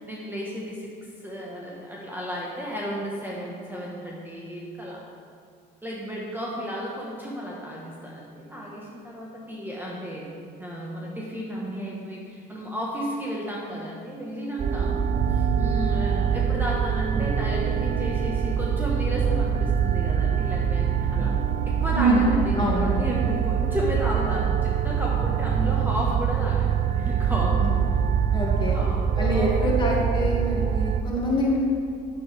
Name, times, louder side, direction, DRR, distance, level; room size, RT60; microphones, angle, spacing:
voice 1, 0.0-5.0 5.8-21.3 21.7-27.6 28.7-29.7, equal, 10° right, -4 dB, 1.5 m, -33 dB
sound 1, 14.6-31.0, right 7 dB, 40° right, 0.6 m, -24 dB
voice 2, 21.9-22.3 22.6-22.9 27.6-27.7 28.3-28.8 29.2-31.6, right 1 dB, 25° left, -3 dB, 2.5 m, -25 dB
9.2 x 9.1 x 3.6 m, 2.3 s
supercardioid pair, 80°, 20 cm